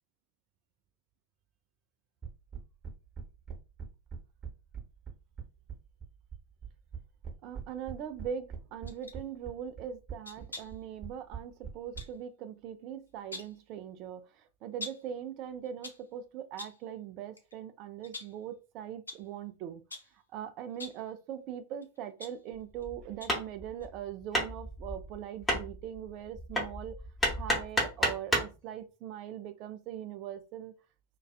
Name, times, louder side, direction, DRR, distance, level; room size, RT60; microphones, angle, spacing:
sound 1, 2.2-12.0, right 6 dB, 20° right, 1.0 m, -42 dB
voice 1, 7.4-19.8 20.3-27.0 27.3-30.7, right 9 dB, 40° right, 0.3 m, -41 dB
sound 2, 8.9-9.2 10.2-10.8 12.0-12.2 13.1-13.6 14.8-15.1 15.6-16.1 16.6-16.9 17.4-17.5 18.0-18.4 19.1-19.3 19.9-20.2 20.7-21.1 21.8-22.8 23.2-23.5 23.8-23.9, left 3 dB, 80° left, 0.4 m, -45 dB
Hammer, 22.5-28.6, equal, 5° left, 1.0 m, -32 dB
2.4 x 2.2 x 2.3 m
figure-of-eight pair, 90°, 0 cm